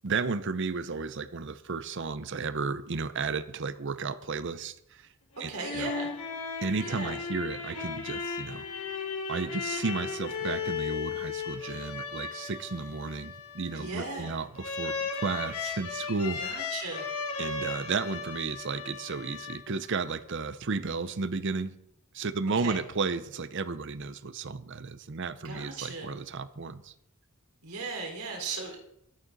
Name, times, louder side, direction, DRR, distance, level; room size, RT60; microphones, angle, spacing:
voice 1, 0.0-5.1 5.4-5.9 6.6-8.7 9.3-16.4 17.4-21.7 22.1-26.9, right 4 dB, 55° right, 14 dB, 0.7 m, -33 dB
sound 1, 5.4-20.0, left 5 dB, 80° left, 2.3 m, -36 dB
voice 2, 5.5-6.1 6.8-7.1 13.7-14.4 16.4-17.1 22.6-22.8 25.4-26.1 27.6-28.8, right 3 dB, 90° right, 0 dB, 3.8 m, -37 dB
22.5 x 9.1 x 4.0 m, 0.76 s
head